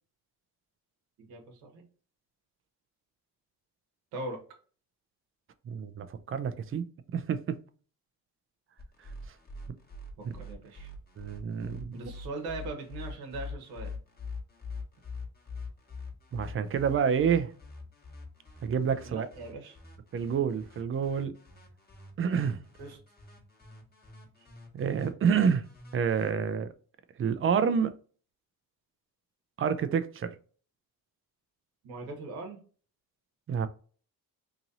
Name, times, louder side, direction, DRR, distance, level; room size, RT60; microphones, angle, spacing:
voice 1, 1.2-1.8 4.1-4.4 10.3-10.9 11.9-13.9 19.0-19.8 22.8-23.0 24.4-24.5 31.8-32.6, right 2 dB, 90° right, 2 dB, 1.0 m, -40 dB
voice 2, 5.7-6.9 7.1-7.6 11.2-12.0 16.3-17.5 18.6-19.3 20.1-21.4 22.2-22.6 24.7-25.7 25.9-26.7 27.2-27.9 29.6-30.3 33.5-33.7, right 7 dB, 35° right, 11 dB, 0.5 m, -28 dB
sound 1, 8.8-26.3, left 3 dB, 25° left, 1.3 m, -44 dB
3.0 x 2.6 x 4.0 m, 0.41 s
cardioid pair, 90°, 37 cm